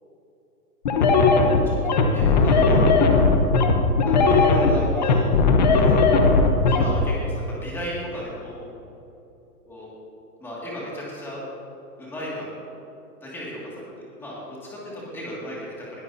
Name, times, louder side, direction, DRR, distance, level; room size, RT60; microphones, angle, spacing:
sound 1, 0.9-6.9, left 4 dB, 30° left, 0.9 m, -17 dB
voice 1, 1.6-2.9 4.0-5.3 5.7-6.0 6.7-8.6 9.6-9.9 10.4-11.4 12.0-12.5 13.2-13.9 14.2-16.0, equal, 5° left, -6 dB, 2.1 m, -35 dB
20.5 x 13.5 x 2.7 m, 2.9 s
hypercardioid pair, 170°, 48 cm